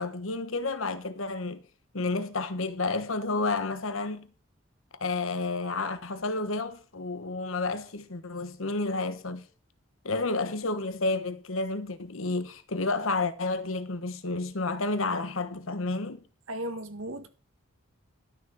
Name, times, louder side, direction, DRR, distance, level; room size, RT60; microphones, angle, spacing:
voice 1, 0.0-1.6 1.9-4.3 5.0-9.5 10.0-16.2, left 3 dB, 75° left, 1.2 m, -30 dB
voice 2, 16.5-17.3, right 1 dB, 70° right, 1.8 m, -35 dB
12.0 x 6.7 x 6.3 m
head